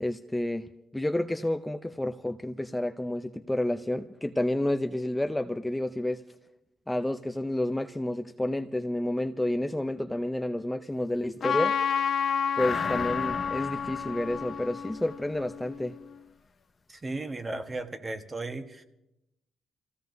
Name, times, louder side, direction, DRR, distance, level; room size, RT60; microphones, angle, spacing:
voice 1, 0.0-6.2 6.9-11.7 12.6-15.9, left 1 dB, 10° left, 0.5 m, -30 dB
Trumpet, 11.4-16.1, left 7 dB, 55° left, 1.2 m, -30 dB
sound 1, 12.6-15.5 15.9-16.0, left 4 dB, 30° left, 0.8 m, -39 dB
voice 2, 16.9-18.8, right 2 dB, 25° right, 1.2 m, -35 dB
28.0 x 16.0 x 2.7 m
cardioid pair, 90°, 0 cm